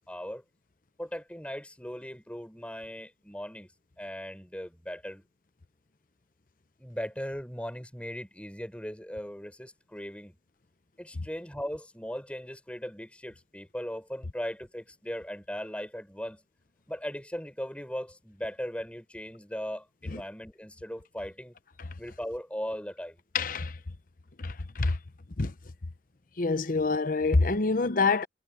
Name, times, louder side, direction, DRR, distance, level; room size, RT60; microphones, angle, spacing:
voice 1, 0.1-0.4 1.0-3.7 4.0-5.2 6.8-10.4 11.0-16.4 16.9-21.6 22.0-23.2, equal, 5° left, 6.2 m, -38 dB
voice 2, 23.3-23.8 24.4-25.0 25.4-25.5 26.4-28.3, left 3 dB, 50° left, 0.9 m, -26 dB
head